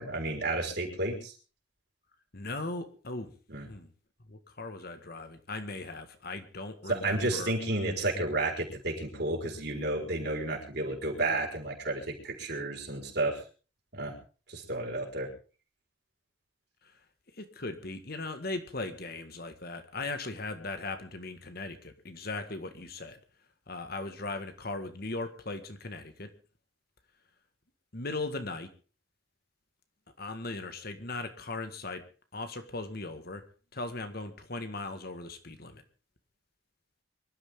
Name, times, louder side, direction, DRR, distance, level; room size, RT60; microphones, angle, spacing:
voice 1, 0.0-1.3 3.5-3.7 6.9-13.4 13.9-14.1 14.5-15.3, right 2 dB, 60° right, 1 dB, 4.7 m, -31 dB
voice 2, 2.3-3.3 3.7-3.9 4.3-7.5 16.8-16.9 17.3-23.2 23.7-26.3 27.9-28.7 30.2-32.1 32.3-33.4 33.7-35.8, left 2 dB, 55° left, 8 dB, 1.8 m, -38 dB
24.0 x 12.0 x 3.8 m, 0.38 s
head